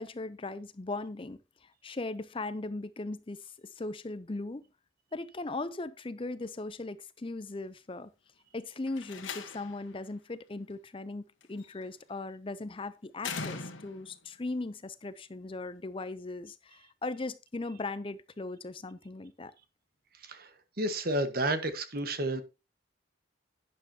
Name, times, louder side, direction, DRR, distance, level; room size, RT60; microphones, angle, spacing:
voice 1, 0.0-4.7 5.1-8.1 8.5-19.5, left 2 dB, 25° left, 0.5 m, -38 dB
Slam, 8.9-9.9 11.4-11.8 13.2-14.2, left 5 dB, 85° left, 1.5 m, -40 dB
voice 2, 20.8-22.4, right 1 dB, 50° right, 1.4 m, -31 dB
11.5 x 9.9 x 2.8 m
head